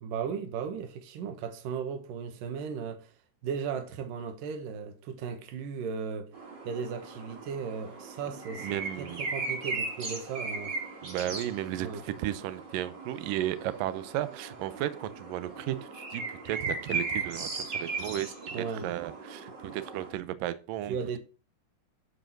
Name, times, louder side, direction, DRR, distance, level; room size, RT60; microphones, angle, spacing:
voice 1, 0.0-3.1 3.4-6.3 6.6-10.8 11.3-11.4 11.6-12.0 18.5-18.9 20.9-21.2, right 6 dB, 60° right, 2.7 m, -36 dB
sound 1, 6.3-20.1, right 3 dB, 35° right, 2.2 m, -38 dB
voice 2, 8.6-9.3 11.0-21.0, right 13 dB, 90° right, 1.9 m, -34 dB
11.5 x 5.2 x 6.0 m
omnidirectional pair, 5.1 m